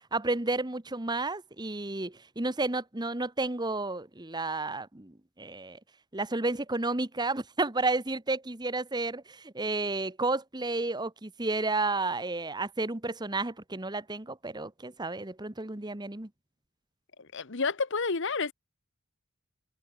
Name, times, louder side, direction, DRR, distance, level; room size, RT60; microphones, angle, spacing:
voice 1, 0.1-5.8 6.1-16.3, right 2 dB, 20° right, 1.2 m, -31 dB
voice 2, 17.2-18.5, left 4 dB, 60° left, 1.1 m, -30 dB
head